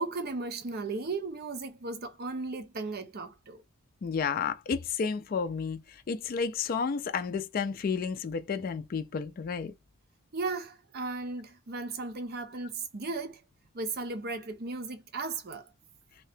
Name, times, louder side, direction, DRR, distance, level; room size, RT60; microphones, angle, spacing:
voice 1, 0.0-3.6 10.3-13.4 13.7-15.7, right 3 dB, 45° right, 0.5 m, -36 dB
voice 2, 4.0-9.7, left 5 dB, 45° left, 0.3 m, -31 dB
2.8 x 2.7 x 3.3 m
head